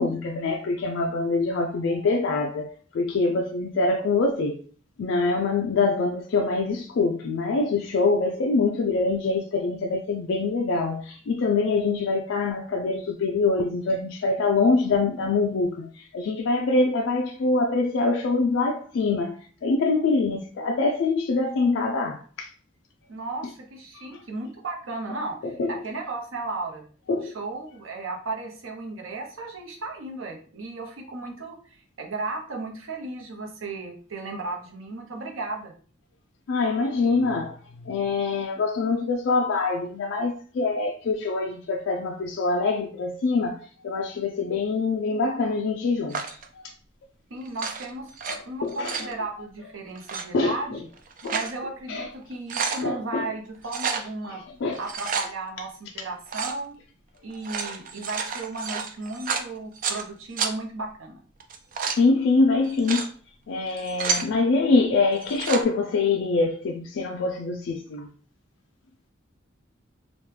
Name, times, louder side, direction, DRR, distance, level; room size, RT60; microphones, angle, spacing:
voice 1, 0.0-4.6 5.0-22.5 23.9-24.2 25.4-25.8 27.1-27.3 36.5-37.6 37.8-46.4 48.3-49.1 50.3-50.8 51.2-51.4 51.9-52.1 52.8-53.3 54.6-54.8 62.0-63.1 63.5-68.1, left 3 dB, 65° left, 0.3 m, -24 dB
voice 2, 23.1-26.8 27.2-35.7 47.3-48.1 48.5-50.9 51.3-54.4 54.8-56.7 57.2-61.2 64.1-64.2, right 3 dB, 85° right, 0.8 m, -35 dB
sound 1, 46.1-46.5 47.5-48.4 48.7-49.1 50.0-50.2 50.9-51.5 52.0-52.1 52.3-52.8 53.7-54.1 54.7-55.3 56.3-56.6 57.3-60.0 60.4-60.5 61.4-62.0 62.6-63.1 63.7-64.3 65.2-65.6, right 6 dB, 45° right, 0.4 m, -30 dB
3.0 x 2.2 x 3.2 m
head